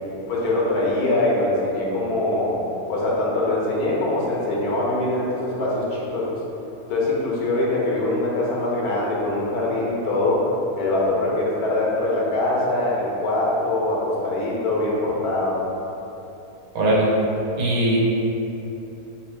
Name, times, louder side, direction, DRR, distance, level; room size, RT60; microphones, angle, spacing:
voice 1, 0.3-2.6 2.9-6.3 6.9-10.5 10.8-15.6, left 2 dB, 80° left, -5 dB, 1.4 m, -23 dB
voice 2, 16.7-17.1 17.6-18.0, right 1 dB, 70° right, -5 dB, 1.3 m, -19 dB
4.4 x 3.5 x 3.3 m, 3.0 s
omnidirectional pair, 1.6 m